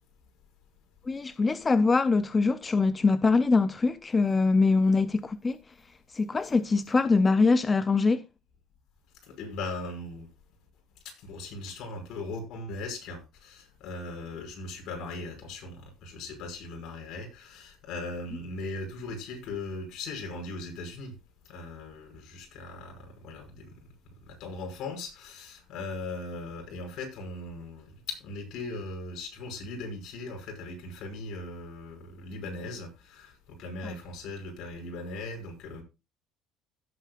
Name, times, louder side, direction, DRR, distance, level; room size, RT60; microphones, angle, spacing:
voice 1, 1.1-5.6 6.1-8.2 33.8-33.9, left 4 dB, 15° left, 0.4 m, -23 dB
voice 2, 9.4-10.3 11.2-15.8 16.0-21.1 21.5-22.9 23.2-23.7 24.4-33.3 33.6-35.8, left 2 dB, 55° left, 5.5 m, -39 dB
16.5 x 8.1 x 2.3 m
cardioid pair, 160°, 0 cm